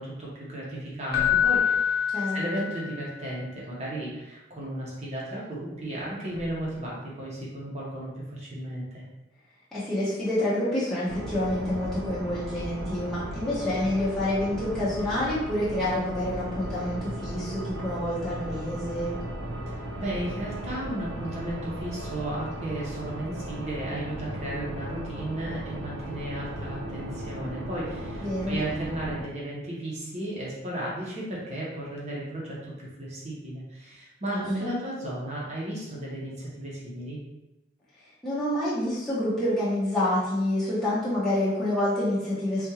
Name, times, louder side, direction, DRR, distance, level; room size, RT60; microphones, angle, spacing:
voice 1, 0.0-9.0 19.9-37.2, right 1 dB, 35° right, -5 dB, 1.0 m, -34 dB
Keyboard (musical), 1.1-3.1 6.3-6.5, left 8 dB, 55° left, 0.7 m, -25 dB
voice 2, 2.1-2.4 9.7-19.2 28.2-28.6 34.3-34.7 38.2-42.7, left 1 dB, ahead, -11 dB, 0.7 m, -28 dB
sound 1, 11.1-29.2, right 1 dB, 80° right, 0.6 m, -36 dB
3.6 x 2.6 x 2.9 m, 0.94 s
head